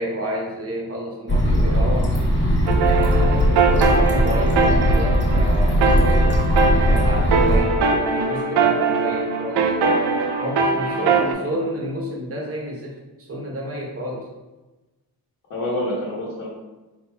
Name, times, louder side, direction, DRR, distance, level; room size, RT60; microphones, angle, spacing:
voice 1, 0.0-2.1 2.8-9.7 10.4-14.3, equal, 35° right, -1 dB, 1.0 m, -30 dB
sound 1, 1.3-7.6, equal, 30° left, 0.8 m, -19 dB
sound 2, 2.7-11.3, right 4 dB, 80° right, 0.5 m, -21 dB
voice 2, 11.0-11.7 15.5-16.5, left 1 dB, 60° left, -8 dB, 1.2 m, -28 dB
4.6 x 3.9 x 2.3 m, 1.1 s
wide cardioid pair, 130°, 39 cm